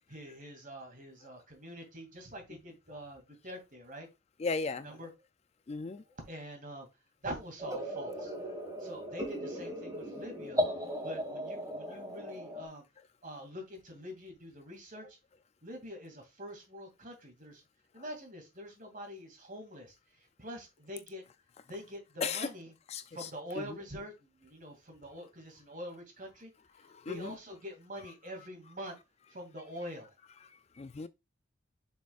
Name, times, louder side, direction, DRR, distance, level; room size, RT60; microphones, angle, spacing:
voice 1, 0.1-4.1 4.8-5.1 5.9-6.9 7.2-8.3 8.8-10.6 11.0-12.8 13.2-15.2 15.6-17.6 17.9-21.2 21.7-22.7 23.1-26.5 26.8-29.0 29.3-30.1, equal, 40° right, 2.5 m, -45 dB
voice 2, 4.4-4.9 5.7-6.0 11.9-12.0 22.2-22.5 22.9-23.3 23.6-23.8 26.8-27.3 30.4-31.1, left 4 dB, 30° left, 0.3 m, -37 dB
sound 1, 7.6-12.7, equal, 15° right, 1.7 m, -37 dB
6.9 x 6.2 x 2.4 m
head